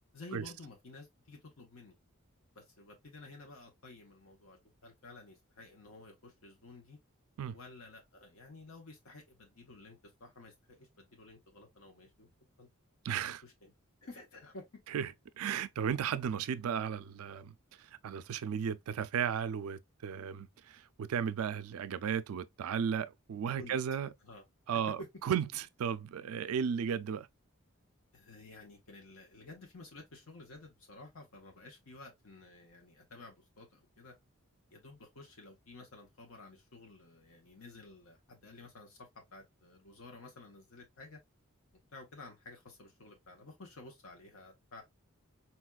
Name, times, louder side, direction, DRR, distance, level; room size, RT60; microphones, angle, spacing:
voice 1, 0.1-1.9 2.5-7.0 7.5-12.3 12.6-12.7 13.1-13.7 14.0-14.6 23.5-23.8 24.2-24.4 24.7-25.1 28.1-34.1 34.7-41.2 41.9-44.8, left 2 dB, 70° left, 0.9 m, -52 dB
voice 2, 13.0-13.4 14.9-24.1 24.7-27.3, right 7 dB, 75° right, 0.3 m, -35 dB
4.2 x 2.3 x 2.2 m
head